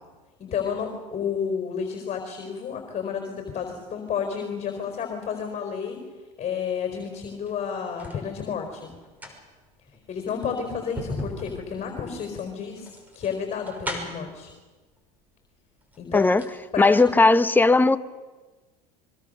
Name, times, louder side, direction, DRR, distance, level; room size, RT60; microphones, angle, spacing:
voice 1, 0.4-6.0 6.4-8.9 10.1-14.5 16.0-16.3 16.7-17.2, left 7 dB, 35° left, 4 dB, 4.6 m, -31 dB
sound 1, 7.3-8.2 9.0-14.4 15.3-15.4 15.8-16.6 16.9-17.0, left 1 dB, 10° right, 5.9 m, -37 dB
voice 2, 16.1-16.4 16.8-18.0, left 3 dB, 10° left, 12 dB, 0.9 m, -17 dB
25.5 x 23.0 x 6.7 m, 1.3 s
supercardioid pair, 95°, 19 cm